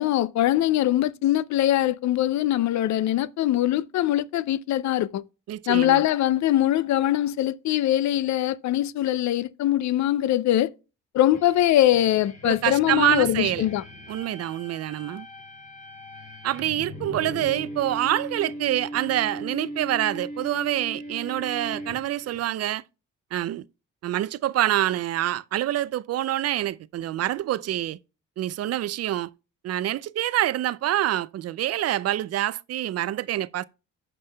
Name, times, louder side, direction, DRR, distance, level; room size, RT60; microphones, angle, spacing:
voice 1, 0.0-5.2 5.7-10.7 11.1-13.8, left 13 dB, 65° left, 0.5 m, -22 dB
voice 2, 5.5-6.0 12.4-13.6 14.1-15.3 16.4-22.8 23.3-23.6 24.0-28.0 28.4-29.3 29.6-33.6, right 13 dB, 55° right, 0.4 m, -26 dB
sound 1, 11.3-22.4, equal, 25° left, 3.8 m, -39 dB
15.0 x 5.3 x 2.2 m
cardioid pair, 90°, 30 cm